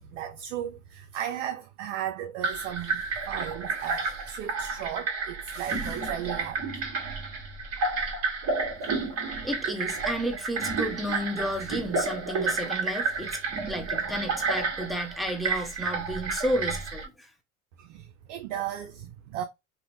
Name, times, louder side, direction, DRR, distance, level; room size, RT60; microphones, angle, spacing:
voice 1, 0.0-6.7 17.8-19.4, right 10 dB, 75° right, 0.5 m, -36 dB
sound 1, 2.4-17.1, right 4 dB, 40° right, 1.5 m, -31 dB
voice 2, 9.4-13.4 13.7-17.3, equal, ahead, 0.9 m, -32 dB
2.9 x 2.2 x 2.6 m
hypercardioid pair, 80°, 38 cm